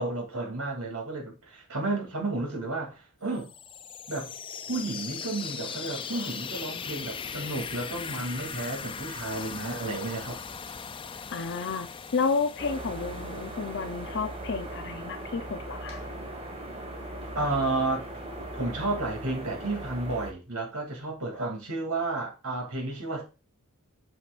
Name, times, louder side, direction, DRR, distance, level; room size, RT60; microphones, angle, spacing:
voice 1, 0.0-3.5 4.1-4.3 4.7-10.4 17.3-18.1 18.5-23.2, right 2 dB, 75° right, 2.8 m, -32 dB
sound 1, 3.3-15.0, left 6 dB, 25° left, 0.4 m, -39 dB
voice 2, 11.3-16.0, left 4 dB, 55° left, 0.7 m, -31 dB
sound 2, 12.6-20.3, right 1 dB, 25° right, 1.6 m, -39 dB
7.9 x 6.1 x 2.5 m
head